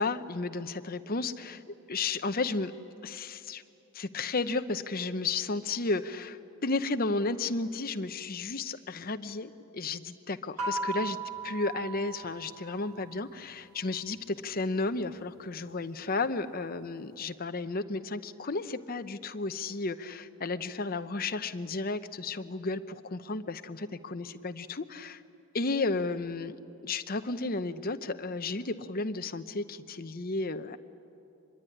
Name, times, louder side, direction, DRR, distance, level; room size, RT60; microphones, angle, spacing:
voice 1, 0.0-1.6 1.9-2.7 3.0-3.6 3.9-11.2 11.4-25.2 25.5-26.6 26.8-30.8, left 3 dB, 40° left, 10 dB, 0.8 m, -33 dB
sound 1, 10.6-13.3, right 3 dB, 85° right, 2.9 m, -37 dB
25.0 x 22.0 x 10.0 m, 2.7 s
head